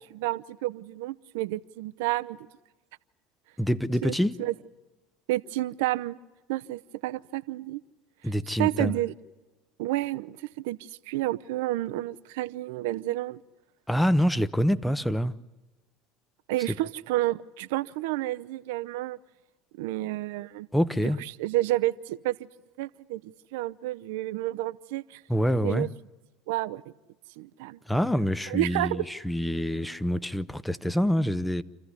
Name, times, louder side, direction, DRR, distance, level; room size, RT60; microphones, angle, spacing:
voice 1, 0.1-2.4 4.0-4.1 4.4-4.5 5.3-6.2 6.5-7.8 8.6-9.1 9.8-13.4 16.5-19.2 19.7-20.7 21.2-22.5 22.8-25.2 25.6-25.9 26.5-26.8 27.4-27.8 28.5-29.1, right 17 dB, 75° right, 0.7 m, -30 dB
voice 2, 3.6-4.4 8.2-9.0 13.9-15.3 20.7-21.2 25.3-25.9 27.9-31.6, equal, 5° left, 0.9 m, -26 dB
27.5 x 14.5 x 9.7 m
hypercardioid pair, 85°, 0 cm